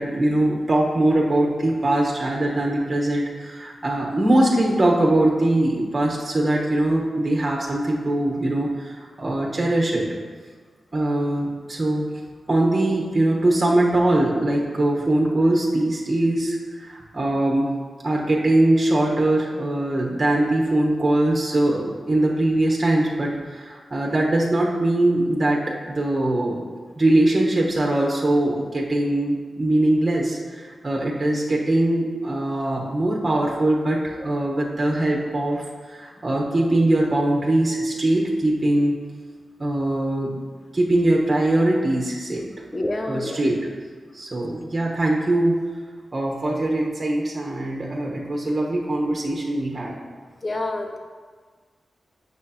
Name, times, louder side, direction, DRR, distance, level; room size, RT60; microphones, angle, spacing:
voice 1, 0.0-10.0 10.9-12.1 12.5-17.7 18.0-25.6 25.9-26.6 27.0-38.9 39.6-40.4 40.7-42.4 43.1-43.7 44.1-45.6 46.1-49.9, right 1 dB, 35° right, -2 dB, 1.2 m, -21 dB
voice 2, 42.7-43.4 50.4-51.0, left 2 dB, 30° left, 4 dB, 0.8 m, -27 dB
9.2 x 6.5 x 2.9 m, 1.5 s
wide cardioid pair, 80°, 0 cm